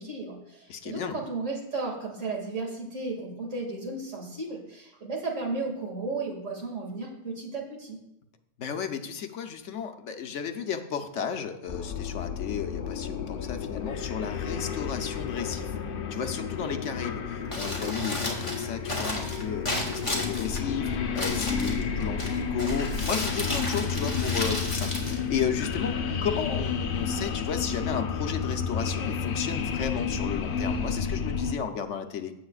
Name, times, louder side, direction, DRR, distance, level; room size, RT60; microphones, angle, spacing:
voice 1, 0.0-8.0, right 3 dB, 75° right, -1 dB, 2.7 m, -34 dB
voice 2, 0.7-1.2 8.6-15.7 16.1-32.3, left 7 dB, 70° left, 7 dB, 1.1 m, -33 dB
sound 1, 11.7-31.6, left 6 dB, 55° left, 0.8 m, -31 dB
sound 2, 15.7-24.4, right 1 dB, 50° right, 4.0 m, -46 dB
Crumpling crinkling, 17.4-25.9, left 1 dB, 25° left, 1.8 m, -34 dB
16.5 x 7.9 x 2.4 m, 0.83 s
omnidirectional pair, 1.3 m